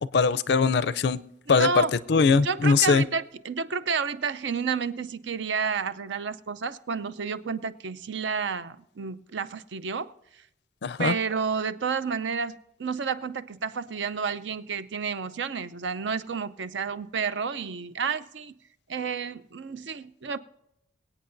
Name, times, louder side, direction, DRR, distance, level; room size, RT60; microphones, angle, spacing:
voice 1, 0.1-1.2 1.5-1.8 2.1-3.0 10.8-11.1, left 4 dB, 60° left, 0.4 m, -21 dB
voice 2, 1.5-1.9 2.4-10.1 11.0-18.5 18.9-20.4, right 5 dB, 75° right, 0.5 m, -30 dB
23.0 x 8.7 x 2.6 m
head